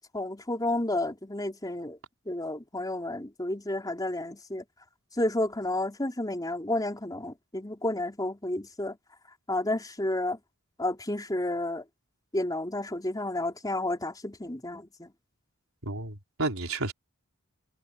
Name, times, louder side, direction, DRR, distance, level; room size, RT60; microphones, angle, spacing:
voice 1, 0.1-2.0 2.3-4.6 5.2-9.0 9.5-10.4 10.8-11.8 12.3-15.1, left 1 dB, 20° left, 4.1 m, -31 dB
voice 2, 15.8-16.9, right 2 dB, 75° right, 4.7 m, -31 dB
head